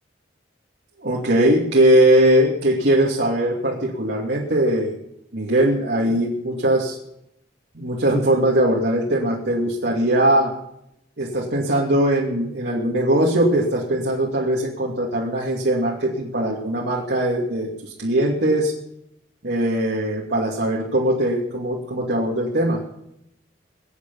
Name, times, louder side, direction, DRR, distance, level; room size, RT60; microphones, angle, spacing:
voice 1, 1.0-5.0 5.3-7.0 7.7-10.5 11.2-18.7 19.4-22.8, right 1 dB, 65° right, -4 dB, 2.6 m, -20 dB
22.5 x 9.8 x 5.5 m, 0.79 s
head